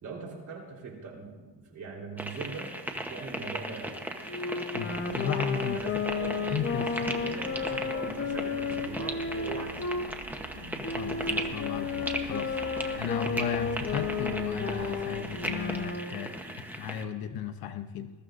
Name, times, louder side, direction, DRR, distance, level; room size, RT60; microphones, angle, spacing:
voice 1, 0.0-4.1 5.7-10.0 16.1-16.6, right 4 dB, 45° right, -1 dB, 3.9 m, -42 dB
sound 1, 2.2-17.0, right 1 dB, 5° right, 0.9 m, -37 dB
Wind instrument woodwind instrument, 4.2-10.1 10.8-16.2, left 5 dB, 30° left, 1.0 m, -33 dB
voice 2, 4.7-5.8 6.3-7.1 10.5-12.5 13.0-18.1, left 8 dB, 60° left, 8 dB, 0.9 m, -35 dB
sound 2, 4.9-15.9, right 4 dB, 90° right, 1.5 m, -46 dB
21.0 x 14.0 x 2.6 m, 1.4 s
cardioid pair, 140°, 41 cm